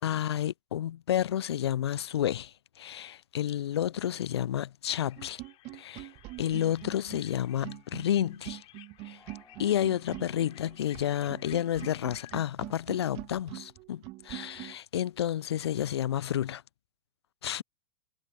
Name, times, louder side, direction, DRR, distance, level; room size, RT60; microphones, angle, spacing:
voice 1, 0.0-5.4 5.8-6.1 6.4-8.6 9.0-9.2 9.6-16.6 17.4-17.6, left 11 dB, 80° left, 0.4 m, -30 dB
sound 1, 4.9-12.4, left 18 dB, 45° left, 4.6 m, -56 dB
sound 2, 5.2-14.8, right 21 dB, 45° right, 2.3 m, -44 dB
sound 3, 9.1-13.7, left 4 dB, 15° left, 6.5 m, -64 dB
hypercardioid pair, 95°, 13 cm